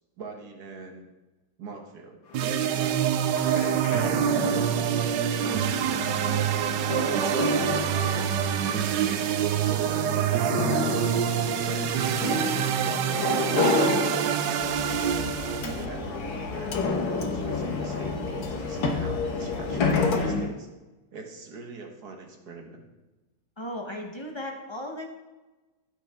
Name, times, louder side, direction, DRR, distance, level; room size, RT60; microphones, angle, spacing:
voice 1, 0.2-1.1 1.6-5.0 5.4-6.8 7.1-9.2 9.7-11.2 11.6-15.0 15.6-20.7 21.1-22.8, right 4 dB, 55° right, 3 dB, 1.8 m, -43 dB
sound 1, 2.3-20.5, left 3 dB, 80° left, 2.0 m, -31 dB
sound 2, 2.3-15.8, right 9 dB, 75° right, 1.2 m, -26 dB
sound 3, 14.6-20.2, left 4 dB, 55° left, 1.4 m, -33 dB
voice 2, 23.6-25.1, left 1 dB, 25° left, 2 dB, 0.5 m, -36 dB
15.0 x 6.5 x 3.5 m, 1.1 s
omnidirectional pair, 2.1 m